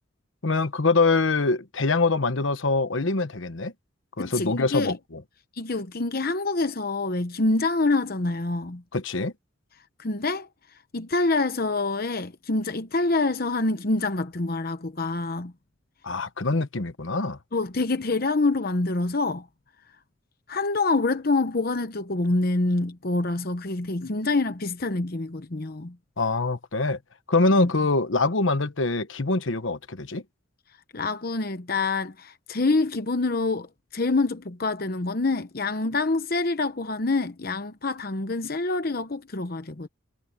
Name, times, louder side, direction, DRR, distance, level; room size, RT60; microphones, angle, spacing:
voice 1, 0.4-3.7 4.2-5.2 8.9-9.3 16.0-17.4 26.2-27.0 27.3-30.2, left 3 dB, 70° left, 1.1 m, -24 dB
voice 2, 4.2-5.0 5.6-8.8 10.0-10.5 10.9-15.5 17.5-19.5 20.5-26.0 27.5-27.7 30.9-39.9, left 3 dB, 45° left, 0.9 m, -26 dB
head